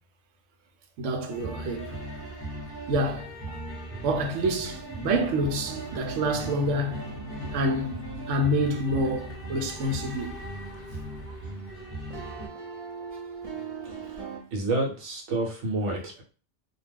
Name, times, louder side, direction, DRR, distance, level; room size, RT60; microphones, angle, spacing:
voice 1, 1.0-2.0 2.9-3.6 4.0-7.0 7.5-8.0 8.3-10.4, right 1 dB, 90° right, 0.9 m, -27 dB
sound 1, 1.3-12.5, right 1 dB, 10° left, 0.9 m, -38 dB
sound 2, 5.3-11.8 12.1-14.4, right 3 dB, 45° right, 0.5 m, -41 dB
voice 2, 14.5-16.2, right 2 dB, 70° right, 1.1 m, -29 dB
2.4 x 2.2 x 3.3 m
omnidirectional pair, 1.2 m